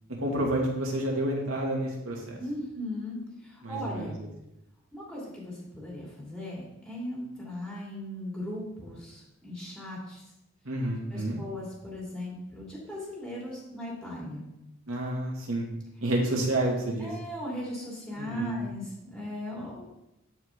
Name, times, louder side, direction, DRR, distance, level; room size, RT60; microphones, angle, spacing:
voice 1, 0.2-2.4 3.6-4.1 10.6-11.4 14.9-15.7 16.0-17.1 18.2-18.6, right 1 dB, 85° right, -2 dB, 2.3 m, -29 dB
voice 2, 2.4-4.2 4.9-10.2 11.1-14.5 17.0-19.8, left 1 dB, 5° left, -5 dB, 2.6 m, -38 dB
12.5 x 4.9 x 3.7 m, 0.87 s
head